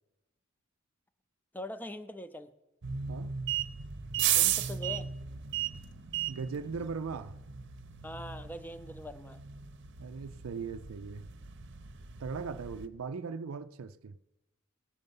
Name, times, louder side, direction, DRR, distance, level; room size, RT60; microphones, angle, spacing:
voice 1, 1.5-2.5 4.3-5.1 8.0-9.4, left 1 dB, 10° left, 0.6 m, -42 dB
sound 1, 2.8-12.9, right 10 dB, 55° right, 0.8 m, -35 dB
voice 2, 6.3-7.4 10.0-11.3 12.2-14.1, right 5 dB, 90° right, 0.5 m, -39 dB
18.0 x 6.7 x 5.4 m
head